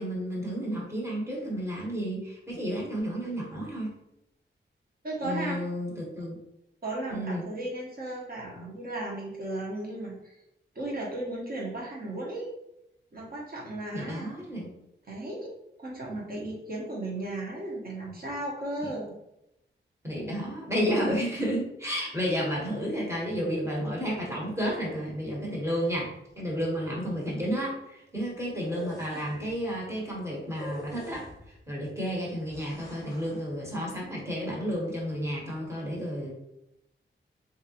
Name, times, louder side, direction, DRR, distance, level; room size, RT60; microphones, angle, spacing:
voice 1, 0.0-3.9 5.2-6.4 7.1-7.5 13.9-14.7 18.8-18.9 20.0-36.3, equal, 15° right, -4 dB, 1.0 m, -31 dB
voice 2, 5.0-5.5 6.8-10.3 10.7-12.5 13.1-14.4 15.1-15.5 15.8-19.2, right 1 dB, 50° right, -4 dB, 1.0 m, -35 dB
sound 1, 28.6-29.5 30.5-31.6 32.5-33.5, left 1 dB, 20° left, 0.7 m, -44 dB
3.2 x 2.6 x 2.8 m, 0.83 s
wide cardioid pair, 110°, 20 cm